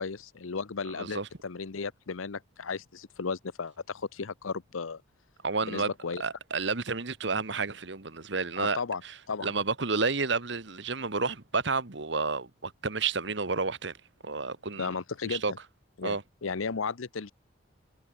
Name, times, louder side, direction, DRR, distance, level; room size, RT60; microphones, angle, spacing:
voice 1, 0.0-5.0 5.6-6.2 8.6-9.0 9.3-9.5 14.8-15.4 16.0-17.3, left 5 dB, 90° left, 0.8 m, -35 dB
voice 2, 1.0-1.3 5.4-5.9 6.2-8.8 9.4-13.9 14.2-14.9 15.2-15.5 16.0-16.2, right 4 dB, 60° right, 1.5 m, -30 dB
head